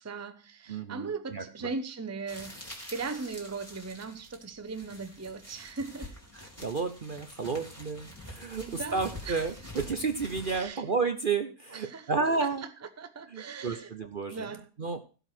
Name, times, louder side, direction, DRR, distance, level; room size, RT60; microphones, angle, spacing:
voice 1, 0.0-2.6 2.9-6.1 8.6-9.5 10.5-10.8 11.7-12.1 12.4-12.5 13.0-14.7, right 4 dB, 15° right, 0.7 m, -38 dB
voice 2, 0.7-1.7 6.3-12.6 13.3-14.5 14.8-15.0, right 4 dB, 45° right, 0.8 m, -32 dB
sound 1, 2.3-10.6, left 1 dB, 10° left, 3.9 m, -46 dB
16.0 x 5.5 x 6.0 m
omnidirectional pair, 1.5 m